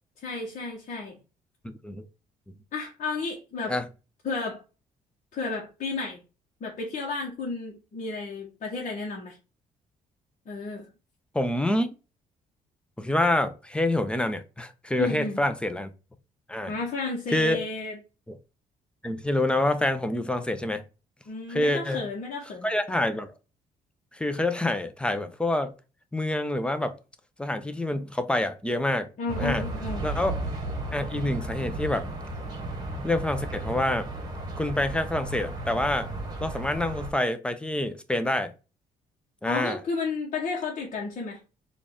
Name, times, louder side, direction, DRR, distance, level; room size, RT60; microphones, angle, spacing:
voice 1, 0.2-1.2 2.7-3.8 4.2-4.6 5.3-6.2 6.6-9.4 10.5-10.8 15.0-15.4 16.7-18.0 21.3-22.7 29.2-30.1 39.4-41.4, left 3 dB, 55° left, 1.0 m, -32 dB
voice 2, 1.6-2.0 2.5-2.6 3.7-3.9 11.3-11.9 13.0-15.9 16.5-16.7 17.3-17.6 18.3-18.4 19.0-20.8 21.5-22.0 22.6-23.3 24.1-25.7 26.1-27.0 27.4-29.1 29.4-29.6 30.0-30.4 30.9-32.1 33.0-34.1 34.6-36.1 36.4-38.5 39.4-39.8, left 1 dB, 5° left, 0.5 m, -27 dB
sound 1, 29.3-37.1, right 2 dB, 25° right, 1.1 m, -34 dB
4.0 x 2.4 x 3.4 m
cardioid pair, 90°, 15 cm